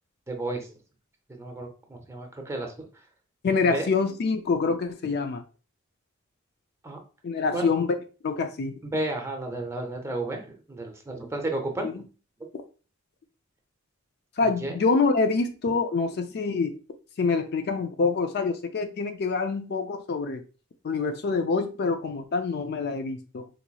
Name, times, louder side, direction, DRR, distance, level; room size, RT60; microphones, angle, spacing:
voice 1, 0.3-0.7 1.4-2.9 3.7-3.9 6.8-7.0 7.5-7.7 8.8-10.4 10.7-11.9 14.4-14.7, right 2 dB, 15° right, 3 dB, 0.6 m, -32 dB
voice 2, 3.4-5.4 7.2-7.9 8.2-8.8 11.8-12.0 14.4-16.8 17.2-20.4 20.8-23.5, left 4 dB, 55° left, 7 dB, 0.4 m, -26 dB
3.9 x 2.9 x 2.2 m, 0.35 s
head